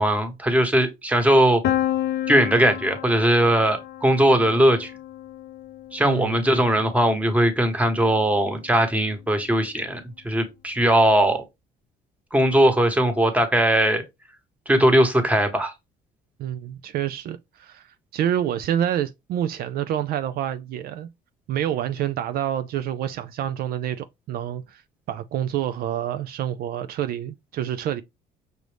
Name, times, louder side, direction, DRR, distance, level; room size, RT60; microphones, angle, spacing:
voice 1, 0.0-1.6 2.3-4.9 5.9-11.4 12.3-14.0 14.7-15.7, right 1 dB, 10° right, 1.1 m, -19 dB
Piano, 1.6-7.4, left 12 dB, 80° left, 0.5 m, -31 dB
voice 2, 6.0-6.6 16.4-21.1 21.5-24.8 25.1-28.0, right 10 dB, 65° right, 0.4 m, -28 dB
6.1 x 2.5 x 3.3 m
cardioid pair, 110°, 17 cm